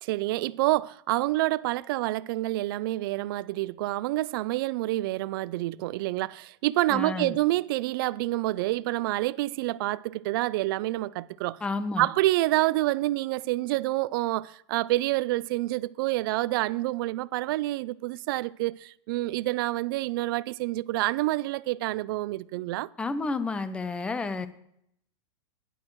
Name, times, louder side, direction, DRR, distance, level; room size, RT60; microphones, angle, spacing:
voice 1, 0.0-11.6 12.0-22.9, right 18 dB, 50° right, 0.4 m, -28 dB
voice 2, 6.9-7.4 11.6-12.1 23.0-24.5, left 3 dB, 5° left, 0.5 m, -30 dB
16.0 x 11.0 x 3.1 m
supercardioid pair, 155°, 15 cm